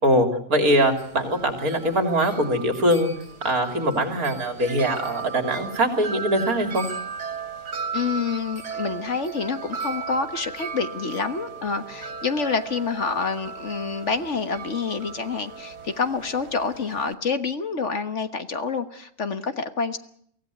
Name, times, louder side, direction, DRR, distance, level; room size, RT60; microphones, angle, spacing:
voice 1, 0.0-3.1 3.4-6.9, right 1 dB, 65° right, 6 dB, 3.6 m, -22 dB
Wind chime, 0.7-17.1, right 5 dB, 80° right, 2.8 m, -36 dB
voice 2, 7.9-20.0, left 5 dB, 50° left, 9 dB, 1.6 m, -27 dB
24.5 x 16.5 x 9.3 m, 0.68 s
omnidirectional pair, 1.7 m